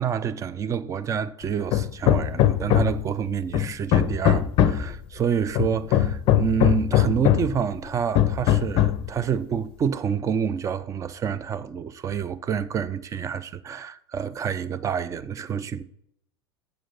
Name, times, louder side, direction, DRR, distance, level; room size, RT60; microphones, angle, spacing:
voice 1, 0.0-15.8, right 7 dB, 20° right, 0.5 m, -28 dB
Hammer, 1.7-3.1 3.5-4.9 5.6-7.6 8.2-9.1, left 11 dB, 40° left, 0.6 m, -21 dB
8.0 x 5.1 x 5.7 m
figure-of-eight pair, 80°, 14 cm